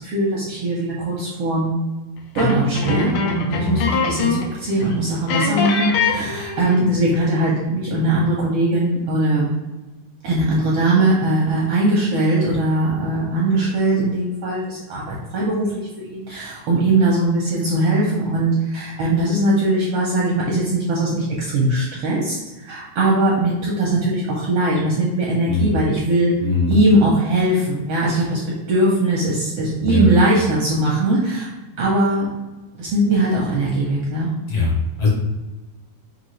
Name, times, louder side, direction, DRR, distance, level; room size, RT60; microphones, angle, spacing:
voice 1, 0.0-1.8 2.3-9.5 10.2-26.3 26.7-31.5 31.8-32.3 32.7-34.3, right 1 dB, 75° right, -4 dB, 1.4 m, -20 dB
sound 1, 2.3-4.6 4.8-4.9 5.3-6.9, left 4 dB, 85° left, 2.2 m, -23 dB
voice 2, 26.4-26.8 29.8-30.1 34.5-35.1, left 3 dB, 65° left, -2 dB, 1.6 m, -21 dB
6.0 x 2.6 x 3.1 m, 1.1 s
omnidirectional pair, 3.4 m